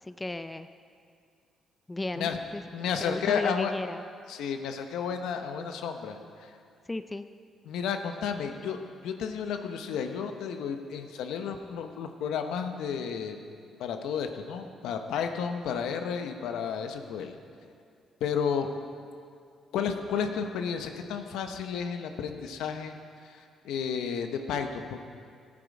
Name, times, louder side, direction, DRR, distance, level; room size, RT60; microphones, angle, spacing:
voice 1, 0.0-0.7 1.9-4.0 6.9-7.3, left 2 dB, 15° left, 10 dB, 0.4 m, -35 dB
voice 2, 2.7-3.7 4.3-6.5 7.6-8.8 9.0-13.4 13.8-17.3 18.2-18.7 19.7-23.0 23.2-25.0, left 7 dB, 85° left, 6 dB, 0.8 m, -32 dB
14.5 x 8.7 x 4.9 m, 2.3 s
cardioid pair, 90°, 0 cm